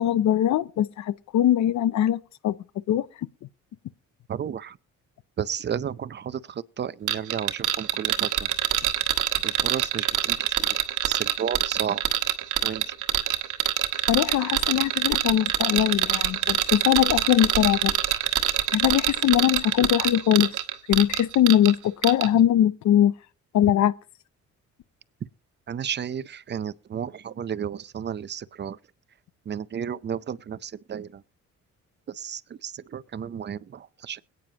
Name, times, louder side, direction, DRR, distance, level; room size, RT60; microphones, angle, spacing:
voice 1, 0.0-2.6 2.9-3.1 14.1-17.9 18.7-20.5 20.9-23.1 23.5-23.9, left 11 dB, 65° left, 0.6 m, -21 dB
voice 2, 4.3-4.8 5.4-8.5 9.4-10.8 11.0-12.0 12.6-12.9 25.7-28.8 29.5-31.2 32.1-34.2, right 8 dB, 35° right, 0.6 m, -33 dB
sound 1, 7.1-21.7 22.0-22.3, right 13 dB, 85° right, 1.2 m, -24 dB
21.5 x 9.2 x 2.9 m
cardioid pair, 90°, 30 cm